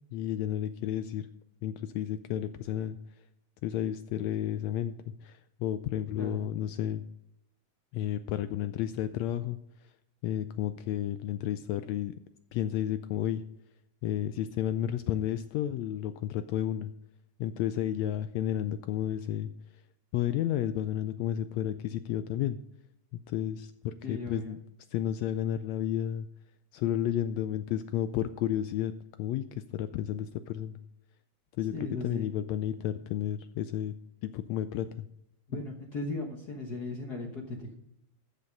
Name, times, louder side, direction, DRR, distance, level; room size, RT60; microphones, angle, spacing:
voice 1, 0.1-1.3 1.6-3.0 3.6-7.0 7.9-9.6 10.2-12.1 12.5-13.4 14.0-16.9 17.4-19.5 20.1-22.6 23.3-24.6 24.9-26.3 26.7-28.9 29.2-30.8 31.6-33.9 34.2-35.0, left 11 dB, 85° left, 11 dB, 1.5 m, -32 dB
voice 2, 6.2-6.6 24.0-24.5 31.7-32.3 35.5-37.7, left 2 dB, 55° left, 2 dB, 1.1 m, -37 dB
13.5 x 7.0 x 5.2 m, 0.78 s
omnidirectional pair, 3.6 m